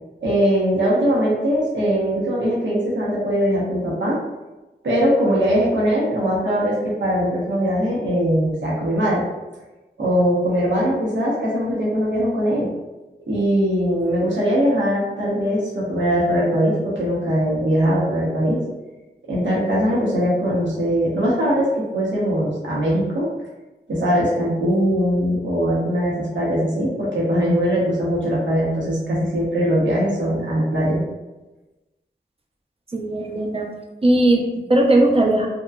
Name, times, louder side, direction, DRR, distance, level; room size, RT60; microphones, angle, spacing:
voice 1, 0.2-4.2 4.8-9.2 10.0-12.7 13.3-18.6 19.3-23.3 23.9-31.0, equal, 90° right, -6 dB, 0.7 m, -21 dB
voice 2, 32.9-33.7 34.0-35.5, right 1 dB, 30° right, 0 dB, 0.5 m, -18 dB
2.8 x 2.2 x 2.3 m, 1.1 s
cardioid pair, 45°, 19 cm